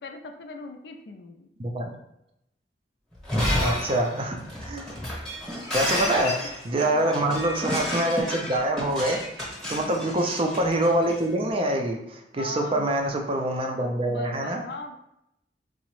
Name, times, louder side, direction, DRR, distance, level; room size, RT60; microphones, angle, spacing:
voice 1, 0.0-1.5 5.8-6.2 6.4-6.5 6.8-7.2 9.7-10.0 12.3-12.9 14.1-15.0, left 3 dB, 65° left, 5 dB, 0.4 m, -40 dB
Shatter, 3.2-11.2, left 1 dB, ahead, 0.8 m, -30 dB
voice 2, 3.6-4.8 5.7-9.2 9.7-14.6, right 1 dB, 30° right, 2 dB, 0.4 m, -25 dB
3.6 x 2.0 x 3.0 m, 0.83 s
head